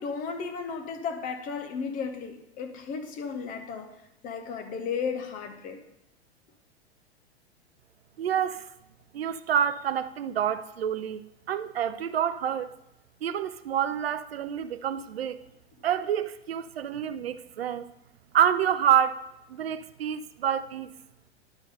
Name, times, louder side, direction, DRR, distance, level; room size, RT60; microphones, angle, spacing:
voice 1, 0.0-5.8, left 5 dB, 25° left, 0.8 m, -34 dB
voice 2, 8.2-8.7 9.1-12.8 13.2-15.4 15.8-17.9 18.3-19.2 19.5-20.9, right 9 dB, 65° right, 0.5 m, -27 dB
10.5 x 3.7 x 5.3 m
figure-of-eight pair, 95°, 32 cm